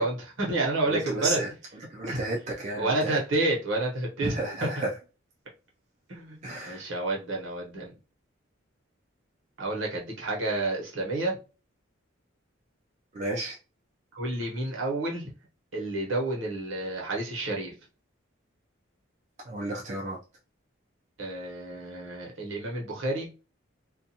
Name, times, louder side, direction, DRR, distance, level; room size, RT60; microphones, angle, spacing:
voice 1, 0.0-1.4 2.1-2.2 2.8-4.8 6.1-6.4 6.6-7.9 9.6-11.4 14.1-15.3 15.7-17.7 21.2-23.3, right 2 dB, 70° right, -1 dB, 1.0 m, -30 dB
voice 2, 0.9-1.5 1.9-3.2 4.2-4.9 6.4-6.8 13.1-13.6 19.5-20.2, right 2 dB, 35° right, -2 dB, 0.4 m, -32 dB
2.5 x 2.3 x 2.7 m, 0.32 s
head